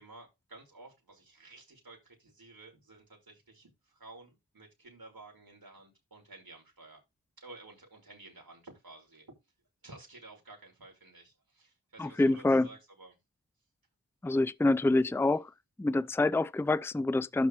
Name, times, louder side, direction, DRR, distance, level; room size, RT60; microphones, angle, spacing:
voice 1, 0.0-7.0 7.4-9.3 9.8-13.2, right 2 dB, 75° right, 6.1 m, -53 dB
voice 2, 12.0-12.7 14.2-15.5 15.8-17.5, left 2 dB, 5° left, 0.5 m, -26 dB
12.0 x 6.4 x 3.3 m
wide cardioid pair, 75°, 36 cm